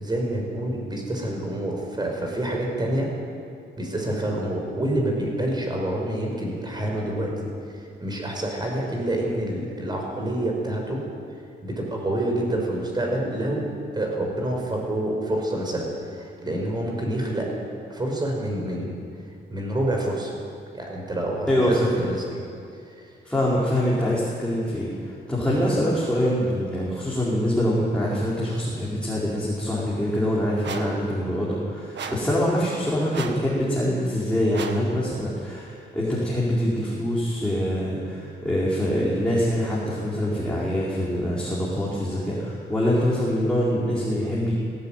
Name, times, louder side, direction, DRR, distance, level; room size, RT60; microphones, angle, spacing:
voice 1, 0.0-3.1 3.8-7.5 8.0-11.0 11.6-13.7 13.9-17.5 17.9-19.0 19.5-20.3 20.7-22.2, right 1 dB, 20° right, 0 dB, 5.7 m, -27 dB
voice 2, 21.5-21.9 23.2-44.5, equal, 5° left, -7 dB, 4.7 m, -24 dB
sound 1, 30.6-31.0 31.9-32.3 33.1-33.5 34.5-34.9, right 5 dB, 70° right, 1.9 m, -34 dB
18.0 x 18.0 x 9.3 m, 2.6 s
cardioid pair, 130°, 19 cm